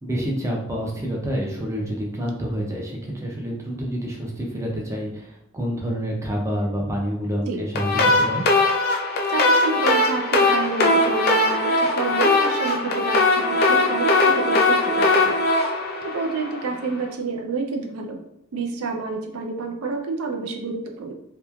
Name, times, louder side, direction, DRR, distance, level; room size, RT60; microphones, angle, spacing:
voice 1, 0.0-8.4, equal, 15° right, -2 dB, 0.5 m, -28 dB
sound 1, 7.7-16.8, left 2 dB, 45° left, 0.4 m, -20 dB
voice 2, 9.3-18.2 18.5-21.1, right 4 dB, 70° right, 3 dB, 0.4 m, -29 dB
2.9 x 2.2 x 2.3 m, 0.78 s
head